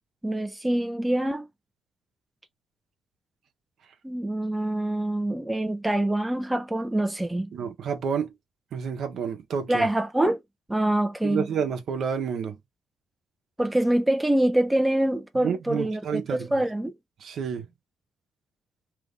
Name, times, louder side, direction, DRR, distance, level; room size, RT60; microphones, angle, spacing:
voice 1, 0.2-1.5 4.0-7.5 9.7-10.4 10.7-11.5 13.6-16.9, right 1 dB, 10° right, 0.6 m, -25 dB
voice 2, 7.5-8.3 8.7-9.9 11.2-12.6 15.4-16.6 17.2-17.7, right 6 dB, 65° right, 0.9 m, -29 dB
3.0 x 2.5 x 3.5 m
cardioid pair, 90°, 0 cm